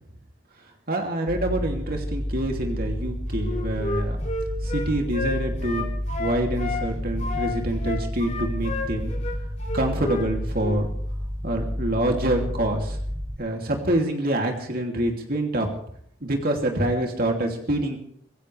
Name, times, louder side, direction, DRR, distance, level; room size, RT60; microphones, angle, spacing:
voice 1, 0.9-4.2 4.6-5.9 6.2-9.1 9.7-10.9 11.4-13.0 13.4-15.7 16.2-18.0, right 1 dB, 50° right, 2 dB, 2.9 m, -26 dB
sound 1, 1.3-13.4, equal, 10° left, 1.4 m, -30 dB
Wind instrument woodwind instrument, 3.4-6.8 7.2-10.3 10.6-10.8, left 2 dB, 40° left, 3.6 m, -31 dB
25.0 x 16.0 x 3.4 m, 0.65 s
head